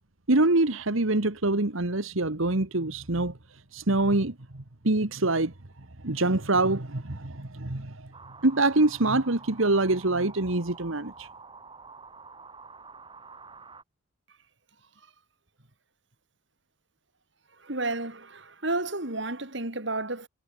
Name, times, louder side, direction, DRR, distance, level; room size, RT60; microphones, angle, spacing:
voice 1, 0.3-3.3 3.7-5.5 6.0-8.1 8.4-11.3, right 2 dB, 75° right, 1.8 m, -25 dB
sound 1, 8.1-13.8, right 4 dB, 25° right, 6.2 m, -48 dB
voice 2, 17.6-20.3, right 2 dB, 60° right, 3.5 m, -31 dB
head